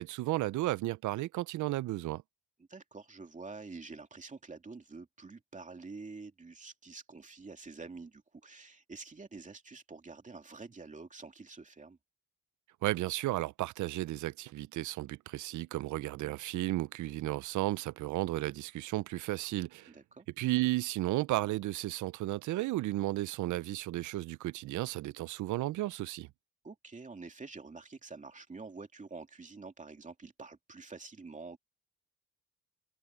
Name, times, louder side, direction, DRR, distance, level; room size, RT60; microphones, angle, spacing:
voice 1, 0.0-2.2 12.8-19.9 20.4-26.3, right 17 dB, 75° right, 0.6 m, -33 dB
voice 2, 2.7-12.0 19.9-20.3 26.6-31.6, right 4 dB, 25° right, 2.7 m, -47 dB
cardioid pair, 90°, 30 cm